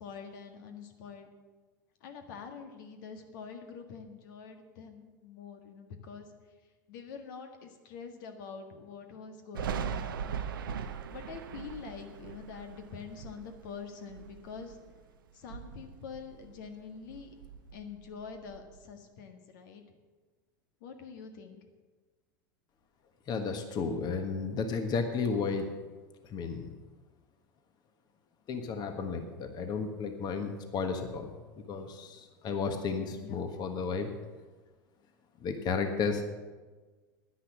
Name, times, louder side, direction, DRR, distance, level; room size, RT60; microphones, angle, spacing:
voice 1, 0.0-1.3 2.0-6.3 6.9-10.4 10.7-14.8 15.3-17.3 17.7-19.8 20.8-21.6 33.2-33.4, left 6 dB, 70° left, 5 dB, 1.6 m, -45 dB
Thunder, 9.5-15.0 15.3-16.8 17.1-18.8, right 7 dB, 85° right, 0.8 m, -40 dB
voice 2, 23.3-25.7 26.3-26.7 28.5-34.1 35.4-36.3, left 5 dB, 40° left, 6 dB, 1.5 m, -33 dB
10.0 x 10.0 x 7.3 m, 1.3 s
hypercardioid pair, 95°, 11 cm